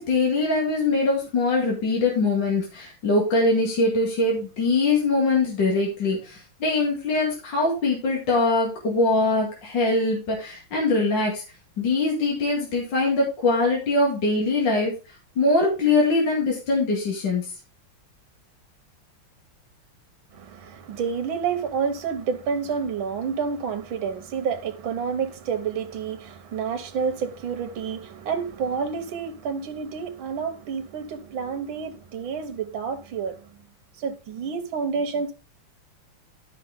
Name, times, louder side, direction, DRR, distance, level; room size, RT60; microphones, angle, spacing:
voice 1, 0.0-11.4 11.8-14.9 15.4-17.5, left 3 dB, 55° left, 2.8 m, -22 dB
voice 2, 20.3-33.5 34.0-35.3, right 6 dB, 70° right, 1.7 m, -29 dB
11.0 x 5.9 x 3.6 m
omnidirectional pair, 2.3 m